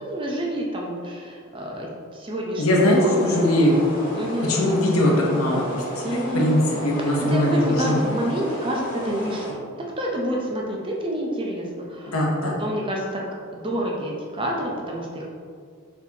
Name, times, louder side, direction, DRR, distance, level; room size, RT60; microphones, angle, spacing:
voice 1, 0.0-3.5 4.1-4.6 6.0-6.7 7.2-12.1 12.6-13.2 13.5-15.3, equal, 25° right, -2 dB, 0.5 m, -28 dB
voice 2, 2.6-3.0 3.2-3.8 4.5-8.0 12.1-12.5, left 1 dB, 80° left, -2 dB, 0.9 m, -21 dB
sound 1, 2.8-9.5, equal, 40° left, 0.8 m, -33 dB
4.3 x 4.2 x 2.8 m, 2.1 s
head